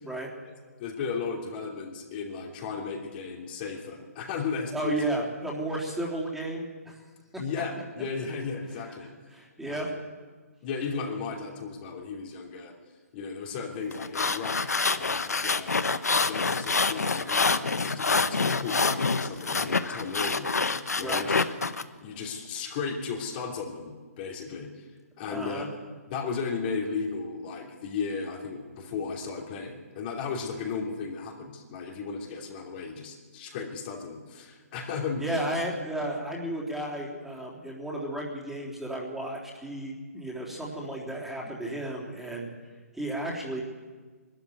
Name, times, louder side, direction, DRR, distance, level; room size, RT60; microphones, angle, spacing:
voice 1, 0.8-5.0 7.4-9.1 9.6-10.0 10.6-12.7 13.1-15.8 16.2-21.4 22.0-24.9 25.2-35.2, left 5 dB, 35° left, 0 dB, 3.0 m, -35 dB
voice 2, 4.7-7.0 8.7-9.9 21.0-21.2 25.3-25.7 35.2-42.5 42.9-43.6, right 1 dB, 5° right, -4 dB, 3.5 m, -33 dB
sound 1, 13.9-21.8, left 4 dB, 90° left, 1.0 m, -26 dB
20.5 x 13.0 x 9.5 m, 1.4 s
hypercardioid pair, 140°, 8 cm